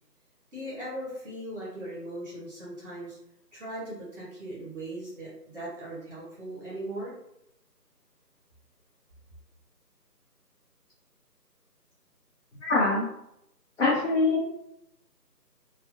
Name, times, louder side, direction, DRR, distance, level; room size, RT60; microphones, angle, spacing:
voice 1, 0.5-3.2 3.5-7.1, right 1 dB, 45° right, -7 dB, 1.1 m, -39 dB
voice 2, 12.6-13.1 13.8-14.4, left 3 dB, 45° left, -7 dB, 0.8 m, -23 dB
3.3 x 2.3 x 2.5 m, 0.82 s
figure-of-eight pair, 160°, 50 cm